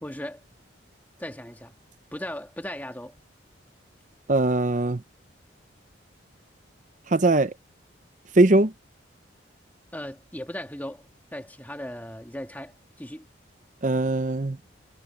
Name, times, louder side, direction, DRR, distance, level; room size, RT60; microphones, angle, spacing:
voice 1, 0.0-0.4 1.2-1.7 2.1-3.1 9.9-11.0 11.3-13.3, left 1 dB, 10° left, 2.2 m, -37 dB
voice 2, 4.3-5.0 7.1-7.5 8.4-8.7 13.8-14.6, right 2 dB, 40° right, 0.7 m, -20 dB
head